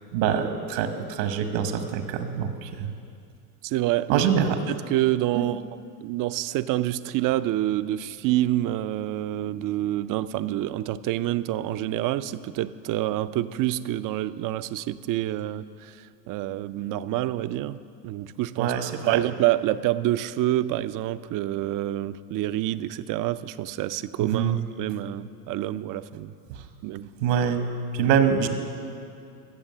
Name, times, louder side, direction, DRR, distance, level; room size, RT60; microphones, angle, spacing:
voice 1, 0.1-2.9 4.1-4.6 5.3-5.6 18.6-19.2 24.2-24.6 27.2-27.6 27.9-28.5, right 8 dB, 75° right, 8 dB, 1.3 m, -24 dB
voice 2, 3.6-4.3 4.7-5.6 6.0-17.8 18.0-18.7 19.1-26.3 26.8-27.1, right 14 dB, 45° right, 14 dB, 0.4 m, -27 dB
15.0 x 7.0 x 6.6 m, 2.5 s
hypercardioid pair, 85°, 50 cm